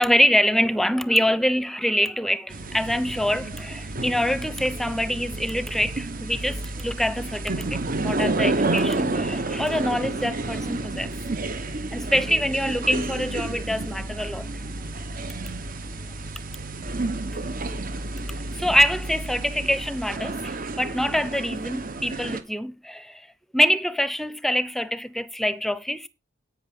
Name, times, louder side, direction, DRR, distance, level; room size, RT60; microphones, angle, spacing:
voice 1, 0.0-11.1 11.9-14.5 17.3-17.8 18.5-23.3 23.5-26.1, equal, ahead, 0.8 m, -25 dB
sound 1, 2.5-22.4, right 2 dB, 45° right, 1.5 m, -30 dB
11.0 x 8.9 x 5.4 m
head